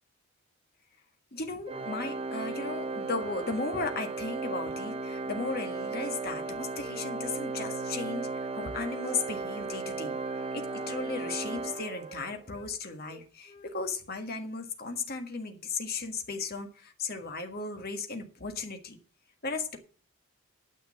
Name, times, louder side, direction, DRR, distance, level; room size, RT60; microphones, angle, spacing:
voice 1, 1.3-10.2 10.5-19.0 19.4-19.8, left 3 dB, 45° left, 1.7 m, -36 dB
Organ, 1.7-12.5, right 3 dB, 25° right, 0.8 m, -36 dB
Wind instrument woodwind instrument, 6.7-9.3 9.6-9.8 10.1-12.7 13.0-13.7, right 1 dB, 25° left, 2.0 m, -52 dB
9.5 x 6.6 x 7.5 m
head